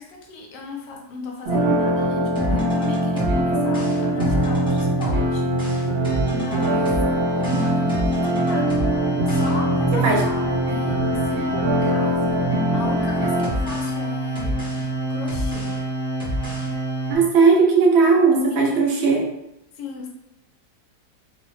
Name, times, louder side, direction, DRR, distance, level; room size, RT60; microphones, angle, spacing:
voice 1, 0.0-6.9 7.3-14.6 15.1-15.8 18.5-19.1 19.7-20.1, left 3 dB, 80° left, 1 dB, 1.2 m, -36 dB
sound 1, 1.5-13.5, right 1 dB, 60° right, 1.1 m, -23 dB
sound 2, 2.3-17.1, right 1 dB, 5° left, 0.5 m, -26 dB
voice 2, 9.9-10.2 17.1-19.3, right 4 dB, 85° right, 0 dB, 0.5 m, -17 dB
2.8 x 2.1 x 3.1 m, 0.82 s
omnidirectional pair, 1.8 m